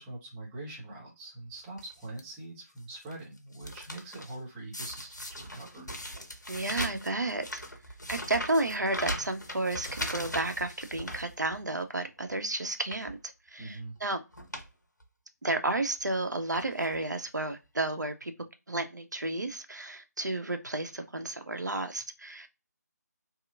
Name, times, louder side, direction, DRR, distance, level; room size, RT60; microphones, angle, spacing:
voice 1, 0.0-5.9 13.6-14.0, right 2 dB, 10° right, 0.8 m, -43 dB
sound 1, 1.8-2.2 2.8-4.4 4.7-11.8 12.2-12.3 12.8-13.1 14.0-14.1 14.3-14.7 15.0-15.1 16.0-16.2 16.5-17.0 17.8-17.9 18.0-18.1, left 1 dB, 80° left, 0.8 m, -39 dB
voice 2, 6.5-7.6 8.1-13.2 13.5-14.2 15.4-18.3 18.7-22.5, right 2 dB, 75° right, 0.6 m, -32 dB
2.8 x 2.3 x 2.4 m
figure-of-eight pair, 155°, 10 cm